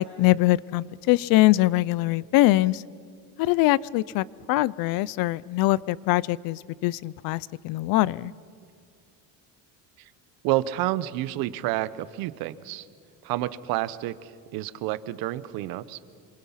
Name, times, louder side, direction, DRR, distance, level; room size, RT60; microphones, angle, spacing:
voice 1, 0.0-2.8 3.4-8.3, left 18 dB, 70° left, 23 dB, 0.6 m, -23 dB
voice 2, 10.4-12.9 13.2-16.0, right 15 dB, 75° right, 16 dB, 1.0 m, -29 dB
27.0 x 26.0 x 5.8 m, 2.3 s
cardioid pair, 145°, 36 cm